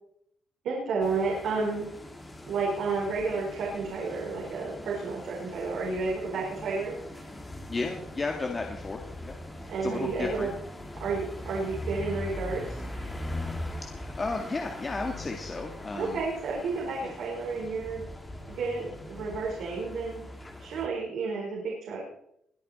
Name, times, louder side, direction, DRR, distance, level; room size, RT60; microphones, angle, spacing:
voice 1, 0.6-1.9 2.4-7.0 9.6-10.5 11.0-13.3 15.9-18.0 18.5-20.2 20.6-22.0, right 4 dB, 75° right, -3 dB, 4.6 m, -31 dB
sound 1, 1.0-20.9, left 1 dB, 15° left, 2.6 m, -41 dB
voice 2, 7.7-9.4 9.6-10.5 13.9-16.2 17.0-17.1, left 3 dB, 30° left, 2 dB, 2.0 m, -33 dB
22.0 x 8.8 x 4.3 m, 0.75 s
cardioid pair, 90°, 0 cm